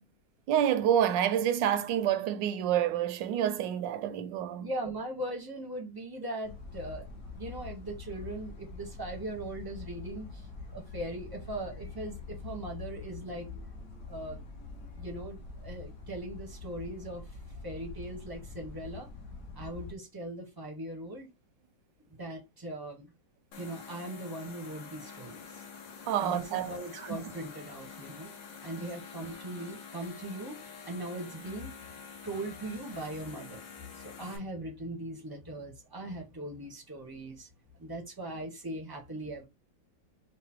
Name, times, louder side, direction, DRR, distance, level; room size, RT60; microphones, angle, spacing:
voice 1, 0.5-4.7 26.1-27.3 28.8-28.9, right 10 dB, 80° right, 1.2 m, -28 dB
voice 2, 4.6-7.1 7.4-10.4 10.7-13.5 14.1-14.4 14.9-17.2 17.6-19.1 19.6-21.3 22.1-23.1 23.6-25.6 26.2-28.3 28.6-30.6 30.9-31.7 32.2-33.7 33.9-37.5 37.8-39.5, right 1 dB, 20° right, 0.6 m, -40 dB
sound 1, 6.4-19.9, left 4 dB, 55° left, 1.1 m, -45 dB
sound 2, 23.5-34.4, left 6 dB, 80° left, 1.7 m, -47 dB
4.8 x 2.1 x 4.2 m
omnidirectional pair, 2.0 m